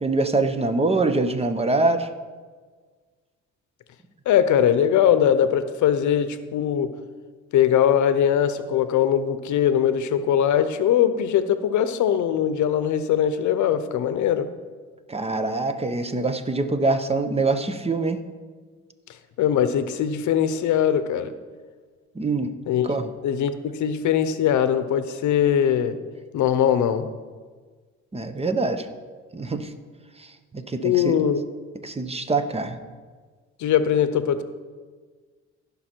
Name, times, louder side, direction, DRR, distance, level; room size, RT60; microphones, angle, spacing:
voice 1, 0.0-2.1 15.1-18.2 22.2-22.5 22.8-23.1 28.1-28.9 29.3-29.7 30.2-30.3 30.5-31.1 31.8-32.8, right 3 dB, 20° right, 9 dB, 0.8 m, -24 dB
voice 2, 4.3-6.9 7.5-14.5 19.4-21.3 22.7-22.9 23.2-26.0 26.3-27.1 30.8-31.4 33.6-34.4, left 9 dB, 75° left, 11 dB, 0.7 m, -21 dB
15.5 x 5.5 x 4.5 m, 1.5 s
cardioid pair, 90°, 30 cm